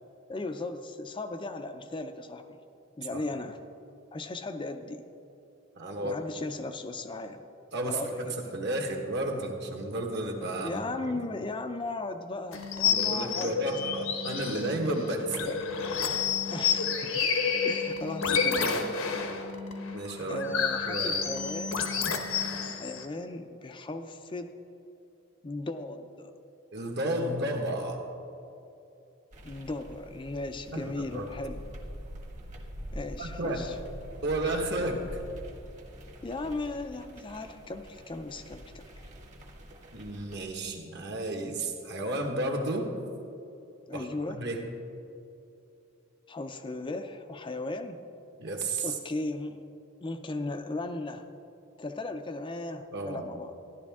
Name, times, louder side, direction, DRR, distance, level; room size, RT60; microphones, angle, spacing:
voice 1, 0.3-2.6 3.0-3.6 4.1-5.1 6.0-7.4 7.8-8.4 10.6-13.5 15.5-15.6 16.5-17.3 17.6-18.9 20.3-21.9 22.7-24.6 25.4-26.3 29.4-31.6 32.9-33.8 36.2-38.8 43.9-44.4 46.3-48.0 48.8-49.6 50.0-51.3 51.8-53.5, left 2 dB, 25° left, 7 dB, 0.4 m, -37 dB
voice 2, 5.7-6.2 7.7-11.2 12.8-15.5 19.9-20.4 20.9-21.2 26.7-28.0 30.7-31.3 33.2-33.7 34.2-35.2 39.9-42.9 43.9-44.1 44.3-44.6 48.4-49.0 52.9-53.2, right 1 dB, 55° right, 2 dB, 1.4 m, -32 dB
sound 1, 12.5-23.0, left 6 dB, 75° left, 1.1 m, -30 dB
sound 2, 29.3-40.5, equal, 35° right, 1.3 m, -45 dB
13.5 x 11.0 x 3.5 m, 2.8 s
head